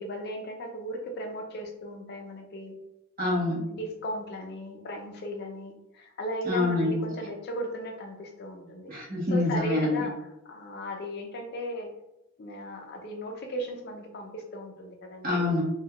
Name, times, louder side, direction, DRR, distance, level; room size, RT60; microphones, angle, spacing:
voice 1, 0.0-2.8 3.7-8.9 9.3-10.1 10.5-11.9 12.4-15.4, equal, 50° left, 3 dB, 0.4 m, -36 dB
voice 2, 3.2-3.6 6.4-7.0 8.9-10.0 15.2-15.6, left 2 dB, 40° right, -5 dB, 1.0 m, -26 dB
3.4 x 2.2 x 2.3 m, 0.90 s
head